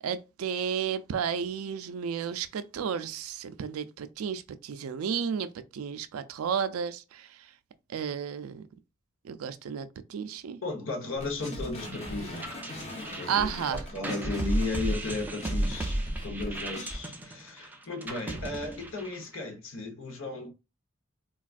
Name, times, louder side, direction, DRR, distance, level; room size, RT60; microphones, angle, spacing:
voice 1, 0.0-7.4 7.9-8.6 9.2-10.6 13.3-13.8, right 7 dB, 85° right, 0.4 m, -32 dB
voice 2, 10.6-12.6 13.2-15.9 16.2-20.5, left 3 dB, 65° left, 1.0 m, -35 dB
sound 1, 11.2-17.0, left 1 dB, 30° left, 0.8 m, -39 dB
sound 2, 11.9-19.3, right 1 dB, 10° right, 0.4 m, -34 dB
4.0 x 2.3 x 2.4 m
head